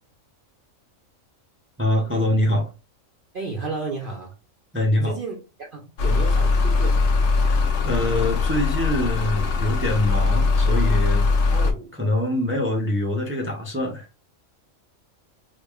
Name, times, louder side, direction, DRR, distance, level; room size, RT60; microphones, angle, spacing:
voice 1, 1.8-2.7 4.7-5.2 7.4-11.3 11.9-14.1, left 1 dB, 15° right, 0.4 m, -24 dB
voice 2, 3.3-4.3 5.0-7.0 11.5-11.9, right 4 dB, 50° right, 0.7 m, -33 dB
sound 1, 6.0-11.7, left 4 dB, 65° left, 0.9 m, -21 dB
4.8 x 2.4 x 2.3 m
omnidirectional pair, 1.4 m